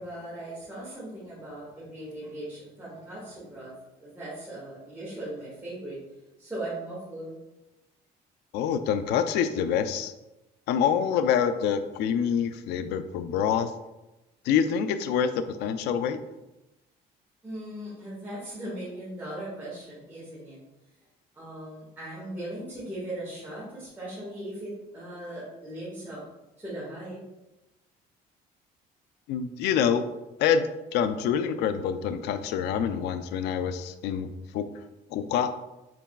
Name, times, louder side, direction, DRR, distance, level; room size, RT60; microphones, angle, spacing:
voice 1, 0.0-3.7 4.0-6.0 6.4-7.4 17.4-20.6 21.3-26.2 26.6-27.2, right 1 dB, 10° right, -9 dB, 1.6 m, -38 dB
voice 2, 8.5-10.1 10.7-13.7 14.4-16.2 29.3-30.0 30.4-30.7 30.9-34.7 35.1-35.6, left 8 dB, 85° left, 10 dB, 0.4 m, -26 dB
5.9 x 3.9 x 2.2 m, 0.99 s
cardioid pair, 110°, 17 cm